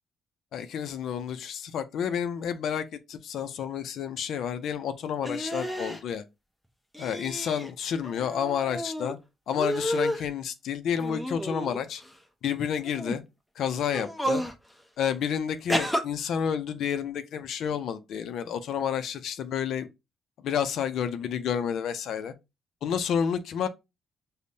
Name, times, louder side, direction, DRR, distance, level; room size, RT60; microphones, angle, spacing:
voice 1, 0.5-6.2 7.0-9.2 9.5-12.0 12.4-13.2 13.6-14.4 15.0-19.9 20.4-22.3 22.8-23.7, left 8 dB, 70° left, 0.4 m, -30 dB
sound 1, 5.2-6.0 6.9-7.7 8.0-9.1 9.5-10.3 11.0-12.1 12.8-13.2 13.9-14.6 15.7-16.0, equal, ahead, 0.6 m, -31 dB
5.1 x 2.1 x 2.6 m
cardioid pair, 90°, 0 cm